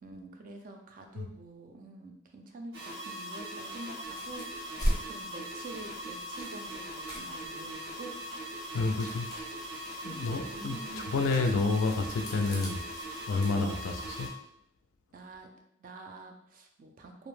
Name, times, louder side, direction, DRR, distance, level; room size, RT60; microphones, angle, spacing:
voice 1, 0.0-8.1 10.0-11.1 13.6-13.9 15.1-15.5 15.8-17.3, right 2 dB, 40° right, 4 dB, 0.3 m, -47 dB
sound 1, 2.7-14.3, right 1 dB, 75° right, 1.0 m, -41 dB
sound 2, 4.0-14.1, equal, 20° left, 0.6 m, -40 dB
voice 2, 8.7-9.3 10.0-12.8 13.3-13.9 14.2-14.3, left 3 dB, 70° left, 5 dB, 0.3 m, -29 dB
2.5 x 2.1 x 3.1 m, 0.78 s
head